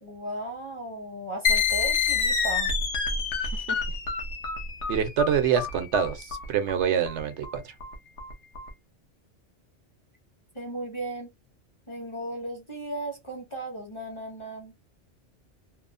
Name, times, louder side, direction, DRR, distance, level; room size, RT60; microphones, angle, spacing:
voice 1, 0.0-2.7 10.5-11.3 11.9-14.7, right 1 dB, 30° left, 0.6 m, -36 dB
sound 1, 1.4-8.7, left 5 dB, 75° left, 1.0 m, -28 dB
voice 2, 3.4-3.8 4.9-7.7, right 8 dB, 75° right, 0.9 m, -26 dB
2.9 x 2.0 x 2.4 m
omnidirectional pair, 1.2 m